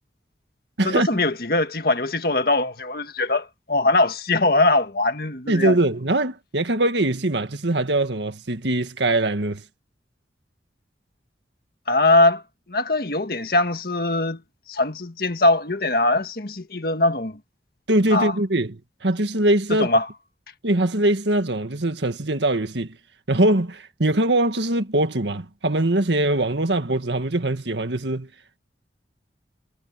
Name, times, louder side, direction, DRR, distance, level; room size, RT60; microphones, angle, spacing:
voice 1, 0.8-5.8 11.9-12.4 12.7-14.4 14.7-17.4 18.1-18.3 19.8-20.1, left 2 dB, 55° left, 1.7 m, -21 dB
voice 2, 5.5-9.6 17.9-19.9 20.6-23.0 23.3-28.3, right 1 dB, 80° right, 1.8 m, -22 dB
head